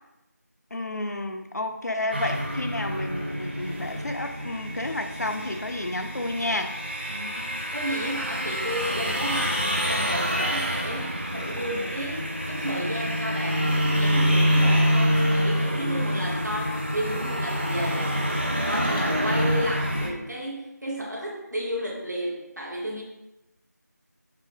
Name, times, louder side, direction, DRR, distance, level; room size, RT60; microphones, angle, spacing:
voice 1, 0.7-6.8, left 2 dB, 65° left, 6 dB, 0.4 m, -31 dB
sound 1, 2.1-20.1, equal, 35° right, 0.4 m, -26 dB
voice 2, 7.1-9.6 9.9-18.2 18.6-23.0, equal, 75° right, -4 dB, 0.9 m, -32 dB
4.5 x 2.1 x 3.2 m, 0.96 s
figure-of-eight pair, 175°, 10 cm